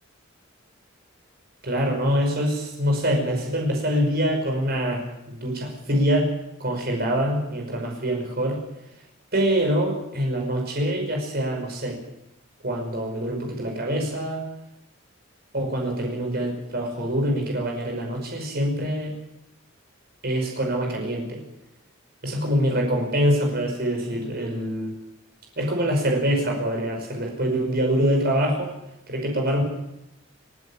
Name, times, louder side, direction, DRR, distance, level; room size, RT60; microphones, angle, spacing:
voice 1, 1.6-6.3 6.6-8.6 9.3-12.0 12.6-14.4 15.5-19.1 20.2-21.4 22.2-25.0 25.6-28.7 29.1-29.6, equal, 50° right, 2 dB, 5.6 m, -25 dB
30.0 x 11.0 x 8.8 m, 0.86 s
head